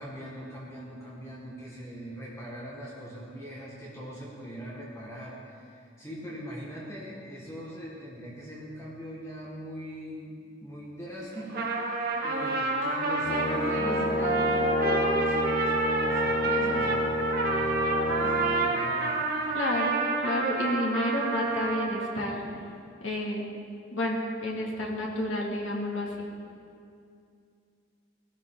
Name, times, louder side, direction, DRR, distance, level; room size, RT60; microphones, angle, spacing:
voice 1, 0.0-19.1, equal, 15° left, -6 dB, 2.0 m, -41 dB
Trumpet, 11.4-22.2, right 3 dB, 50° right, 2.0 m, -29 dB
Brass instrument, 13.2-18.7, left 1 dB, 50° left, 0.9 m, -29 dB
voice 2, 19.5-22.4 23.0-23.5 23.9-26.2, left 1 dB, 85° left, -2 dB, 2.6 m, -30 dB
18.5 x 12.5 x 4.0 m, 2.4 s
head